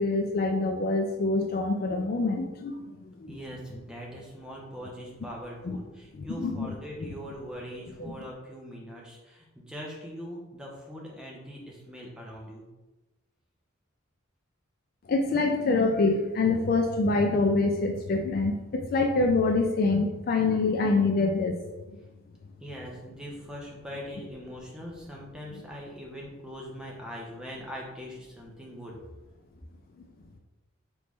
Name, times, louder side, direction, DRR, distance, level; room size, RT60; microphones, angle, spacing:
voice 1, 0.0-2.7 3.2-3.4 5.7-5.8 6.1-6.7 7.0-7.1 8.0-8.1 15.1-21.6 30.0-30.1, left 3 dB, 45° left, 3 dB, 0.3 m, -25 dB
voice 2, 3.3-12.7 22.6-29.0, equal, 5° right, -3 dB, 0.7 m, -41 dB
3.8 x 3.1 x 3.6 m, 1.1 s
head